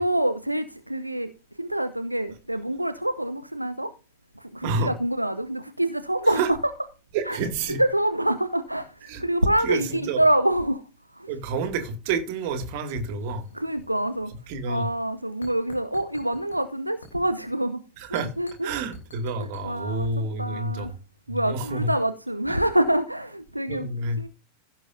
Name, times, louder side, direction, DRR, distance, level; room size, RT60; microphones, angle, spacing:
voice 1, 0.0-1.3 1.6-3.9 4.4-6.6 7.3-7.4 7.7-10.8 11.1-11.3 13.5-14.3 14.7-17.8 18.1-18.7 19.4-20.1 20.4-20.9 21.3-23.9 24.2-24.3, right 1 dB, 85° right, 0.7 m, -26 dB
voice 2, 4.6-4.9 6.4-6.5 7.1-7.8 9.0-9.2 9.6-10.2 11.3-13.5 14.5-14.9 18.0-18.3 18.6-21.0 21.3-21.9 23.7-24.2, right 3 dB, 45° right, 2.2 m, -29 dB
sound 1, 13.2-14.3 14.6-14.8 15.4-16.6 17.0-17.5 18.1-19.6, left 3 dB, 70° left, 3.1 m, -49 dB
16.0 x 7.5 x 2.7 m
figure-of-eight pair, 90°, 0 cm